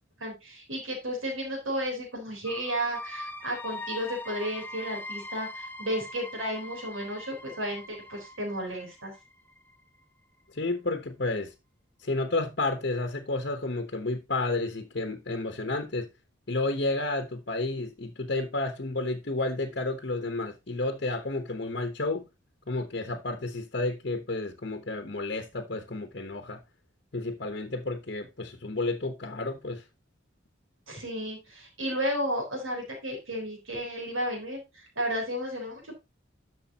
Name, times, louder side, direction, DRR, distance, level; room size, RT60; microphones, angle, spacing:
voice 1, 0.2-9.1 30.9-36.0, equal, 90° right, 3.9 m, -33 dB
sound 1, 2.4-10.0, left 1 dB, 10° left, 0.6 m, -42 dB
voice 2, 10.5-11.5 12.0-16.1 16.5-22.3 22.7-26.6 27.1-29.8, left 2 dB, 50° left, 1.0 m, -31 dB
11.5 x 6.4 x 2.9 m
head